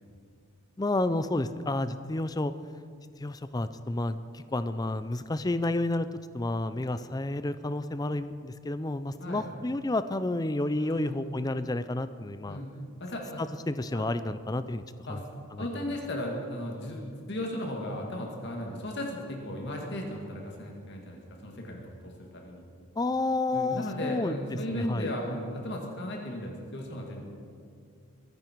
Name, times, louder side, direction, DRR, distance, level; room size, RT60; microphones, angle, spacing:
voice 1, 0.8-2.5 3.2-6.1 6.3-12.6 13.4-14.8 15.1-15.2 15.5-15.8 23.0-24.4 24.7-25.1, left 2 dB, 15° left, 13 dB, 0.4 m, -30 dB
voice 2, 10.7-11.2 12.5-12.7 13.0-13.4 13.9-14.1 15.1-15.2 15.6-22.6 23.5-27.2, left 1 dB, 50° left, 0 dB, 2.2 m, -36 dB
23.0 x 10.5 x 4.6 m, 2.3 s
head